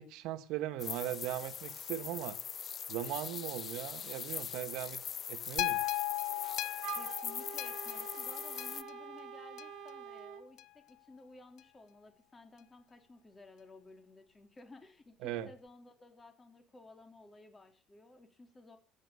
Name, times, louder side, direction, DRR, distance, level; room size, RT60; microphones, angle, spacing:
voice 1, 0.0-2.4 2.9-5.0 5.3-5.8 15.2-15.5, right 13 dB, 85° right, 1.4 m, -39 dB
sound 1, 0.8-8.8, left 8 dB, 40° left, 0.7 m, -42 dB
sound 2, 5.6-9.9 10.6-10.7, left 20 dB, 75° left, 0.7 m, -37 dB
Wind instrument woodwind instrument, 6.8-10.5, right 9 dB, 65° right, 2.7 m, -46 dB
voice 2, 6.9-18.8, left 2 dB, 20° left, 3.4 m, -56 dB
16.0 x 10.0 x 7.0 m
cardioid pair, 135°, 0 cm